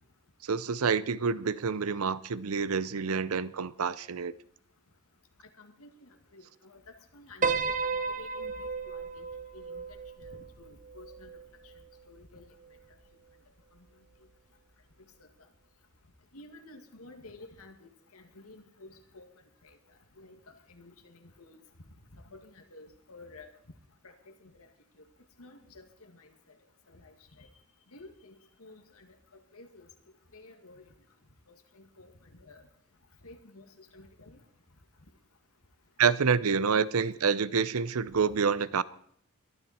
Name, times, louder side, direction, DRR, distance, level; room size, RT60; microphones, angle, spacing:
voice 1, 0.4-4.3 36.0-38.8, right 6 dB, 75° right, 0.6 m, -27 dB
voice 2, 5.6-6.8 7.1-9.3 9.5-11.3 11.6-11.7 12.1-12.4 13.8-13.9 15.2-15.3 16.3-19.3 19.6-19.8 20.2-21.6 22.1-23.5 24.0-24.5 25.4-26.3 26.9-27.5 27.9-29.1 29.3-29.9 30.3-30.9 31.5-32.7 33.2-34.4, left 2 dB, 80° left, 2.2 m, -52 dB
Piano, 7.4-11.8, right 4 dB, 35° right, 0.9 m, -34 dB
21.5 x 12.5 x 4.4 m
head